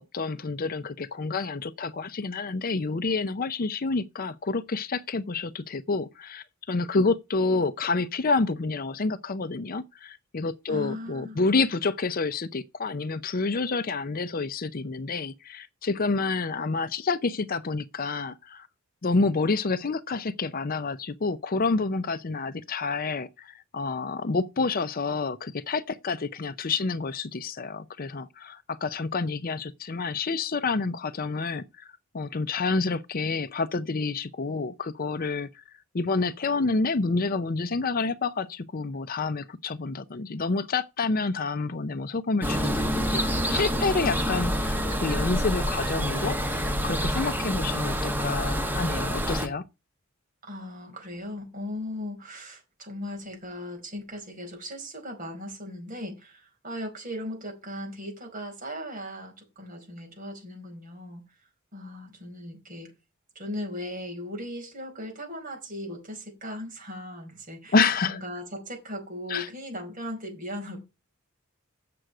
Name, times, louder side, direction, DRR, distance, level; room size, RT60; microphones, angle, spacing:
voice 1, 0.0-18.7 19.0-31.9 32.1-35.5 35.9-49.6 67.7-68.2 69.3-69.5, left 3 dB, 45° left, 0.6 m, -28 dB
voice 2, 10.7-11.4 50.4-61.2 61.7-62.9 63.3-70.8, left 1 dB, 40° right, 5.0 m, -38 dB
sound 1, 42.4-49.5, equal, 10° right, 1.6 m, -27 dB
7.7 x 6.3 x 8.0 m
head